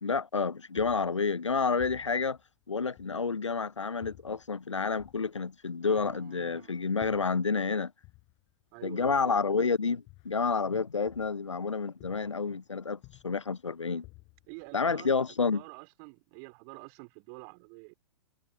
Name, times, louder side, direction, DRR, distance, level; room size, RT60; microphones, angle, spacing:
voice 1, 0.0-2.4 2.7-7.9 8.8-13.0 13.2-14.0 14.7-15.6, left 5 dB, 80° left, 0.6 m, -29 dB
sound 1, 0.7-3.6 4.0-7.7 8.0-11.7 12.0-12.6 12.9-15.2, left 24 dB, 35° left, 7.1 m, -56 dB
voice 2, 5.8-6.8 8.7-9.4 14.5-15.2 15.5-17.9, right 40 dB or more, 35° right, 3.0 m, -48 dB
figure-of-eight pair, 105°, 15 cm